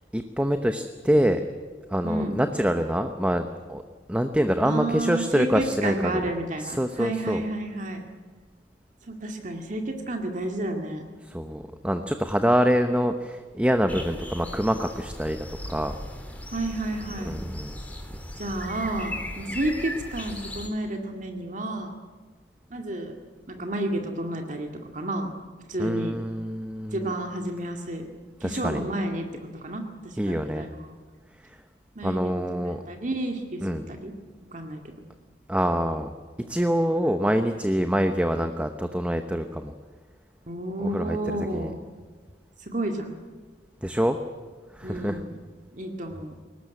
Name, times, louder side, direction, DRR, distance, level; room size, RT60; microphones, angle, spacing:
voice 1, 0.1-1.4 1.9-3.8 4.1-6.2 6.6-7.4 11.2-16.0 17.2-17.7 25.8-27.2 28.4-28.8 30.2-30.7 31.4-31.6 32.0-32.8 33.6-33.8 35.5-36.1 36.5-39.7 40.8-41.7 43.8-44.2 44.7-45.2, equal, 5° right, 7 dB, 0.9 m, -25 dB
voice 2, 2.0-2.4 4.6-8.1 9.0-11.0 16.5-17.3 18.4-21.9 22.7-23.2 23.5-25.3 25.7-26.2 26.9-28.1 28.4-29.3 29.5-30.9 32.0-34.1 34.5-34.9 40.5-41.8 42.6-43.1 44.8-45.4 45.7-46.4, right 1 dB, 45° right, 4 dB, 2.1 m, -31 dB
sound 1, 13.9-20.7, left 1 dB, 10° left, 3.1 m, -37 dB
22.0 x 19.0 x 9.5 m, 1.5 s
head